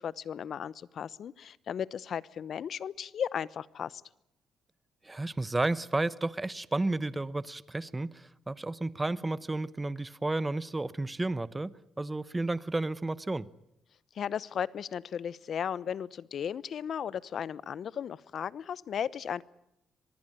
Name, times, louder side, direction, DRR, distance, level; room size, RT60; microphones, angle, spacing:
voice 1, 0.0-4.0 14.1-19.4, left 8 dB, 60° left, 0.9 m, -35 dB
voice 2, 5.0-13.5, right 2 dB, 15° right, 1.0 m, -32 dB
25.5 x 20.0 x 8.9 m
cardioid pair, 90°, 0 cm